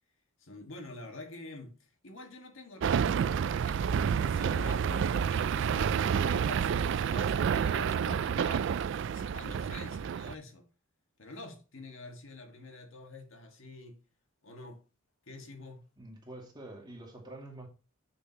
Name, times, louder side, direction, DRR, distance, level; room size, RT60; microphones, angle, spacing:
voice 1, 0.4-6.7 7.1-8.8 9.1-10.7 11.2-14.0 14.4-14.8 15.3-15.9, left 2 dB, 70° left, 1.7 m, -47 dB
sound 1, 2.8-10.3, right 7 dB, 60° right, 0.3 m, -29 dB
voice 2, 16.0-17.7, right 1 dB, 20° right, 2.2 m, -47 dB
7.9 x 6.4 x 2.9 m
head